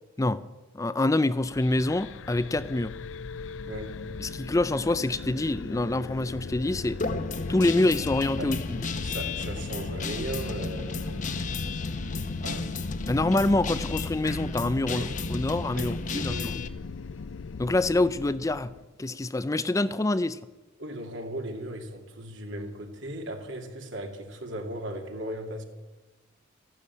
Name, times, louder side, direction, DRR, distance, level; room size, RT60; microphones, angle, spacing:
voice 1, 0.7-2.9 4.2-7.0 7.5-8.8 13.1-16.4 17.6-18.7 19.0-20.4, left 2 dB, 15° left, 0.4 m, -26 dB
sound 1, 1.4-18.8, left 4 dB, 75° left, 0.5 m, -38 dB
voice 2, 3.7-4.0 8.4-8.5 9.0-11.3 12.4-12.7 14.9-15.1 15.7-16.6 20.8-25.6, right 1 dB, 70° right, 2.5 m, -37 dB
Guitar, 7.0-16.7, left 3 dB, 40° left, 0.9 m, -33 dB
14.0 x 12.0 x 8.4 m
head